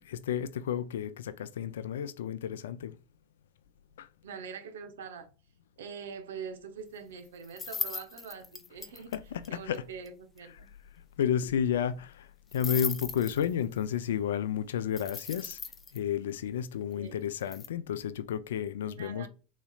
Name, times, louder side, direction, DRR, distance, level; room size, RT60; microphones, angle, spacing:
voice 1, 0.0-2.9 4.0-4.1 9.1-9.8 11.2-15.6 15.9-19.3, left 9 dB, 85° left, 0.4 m, -32 dB
voice 2, 4.2-5.3 5.8-9.2 9.5-10.7 16.9-17.2 18.8-19.3, right 6 dB, 85° right, 0.8 m, -44 dB
sound 1, 7.4-9.2 9.4-9.5 9.7-9.8 10.1-10.2 10.4-10.5 12.5-13.8 15.0-16.0 17.4-17.7, left 5 dB, 25° left, 0.5 m, -37 dB
3.9 x 3.1 x 2.4 m
hypercardioid pair, 100°, 0 cm